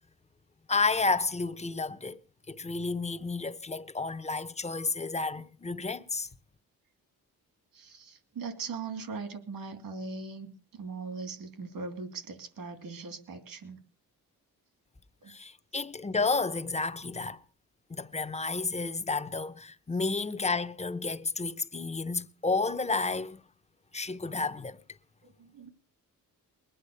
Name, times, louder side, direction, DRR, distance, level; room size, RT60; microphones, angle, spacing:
voice 1, 0.7-2.2 2.5-6.3 15.3-17.4 17.9-23.4 23.9-24.8, left 3 dB, 20° left, 0.8 m, -31 dB
voice 2, 7.7-13.8 15.2-15.4 25.2-25.7, right 4 dB, 75° right, 2.8 m, -40 dB
21.0 x 10.0 x 6.7 m
cardioid pair, 100°, 35 cm